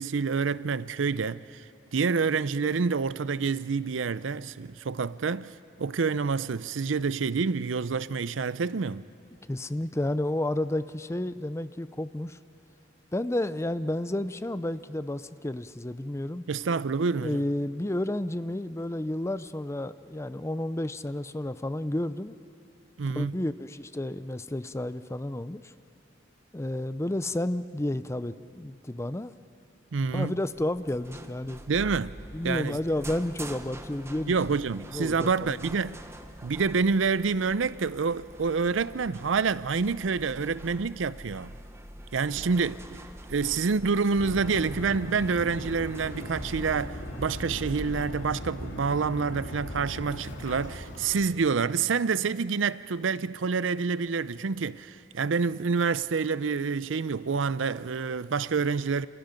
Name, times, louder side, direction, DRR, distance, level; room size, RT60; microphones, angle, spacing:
voice 1, 0.0-1.6 1.9-9.1 16.5-17.4 23.0-23.3 29.9-30.4 31.7-32.2 32.4-32.8 34.3-36.0 36.4-41.5 42.1-43.0 43.3-59.1, right 5 dB, 85° right, 0.6 m, -27 dB
voice 2, 9.5-12.4 13.1-16.5 17.1-22.3 23.2-25.7 26.5-29.3 30.1-31.6 32.3-34.3 34.9-35.6, left 1 dB, 15° left, 0.5 m, -31 dB
sound 1, 30.5-48.0, right 1 dB, 15° right, 1.1 m, -45 dB
sound 2, 44.2-51.2, left 1 dB, 75° left, 2.7 m, -39 dB
28.5 x 27.5 x 5.2 m
head